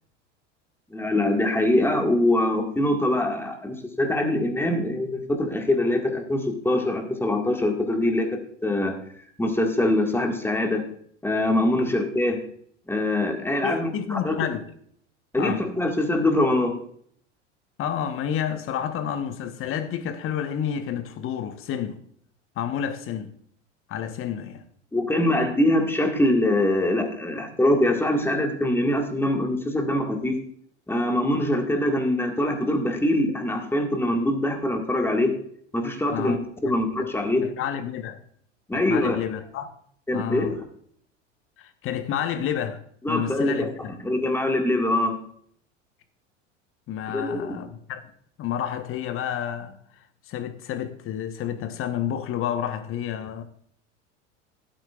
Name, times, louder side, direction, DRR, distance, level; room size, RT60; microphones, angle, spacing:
voice 1, 0.9-10.8 11.2-12.4 12.9-14.4 15.3-16.8 24.9-30.4 30.9-35.3 35.7-36.4 36.6-37.4 38.7-39.2 40.1-40.6 43.0-45.1 47.1-47.7, left 1 dB, 5° left, 1.8 m, -23 dB
voice 2, 13.6-14.7 15.4-15.6 17.8-22.0 22.6-23.3 23.9-24.6 36.1-36.4 36.6-37.1 37.6-38.2 38.7-39.7 40.1-40.5 41.6-42.8 43.1-43.9 46.9-48.1 48.4-49.8 50.3-53.4, left 9 dB, 35° left, 1.1 m, -30 dB
16.5 x 8.9 x 2.4 m
figure-of-eight pair, 80°, 37 cm